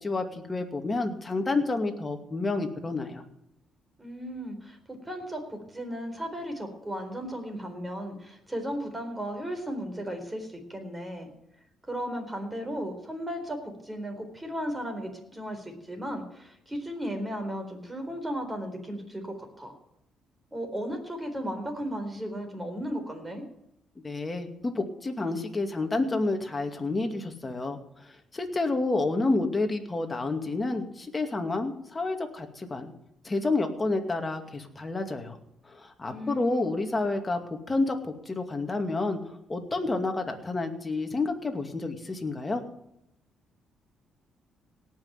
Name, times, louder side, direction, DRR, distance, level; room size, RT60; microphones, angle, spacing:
voice 1, 0.0-3.2 24.0-27.8 28.3-32.9 33.2-35.4 35.7-37.4 37.7-42.6, left 3 dB, 20° left, 5 dB, 2.4 m, -29 dB
voice 2, 4.0-11.3 11.9-13.6 13.8-19.8 20.5-23.4 36.1-36.7, equal, 15° right, 5 dB, 4.1 m, -35 dB
18.0 x 6.3 x 9.4 m, 0.80 s
cardioid pair, 95°, 0 cm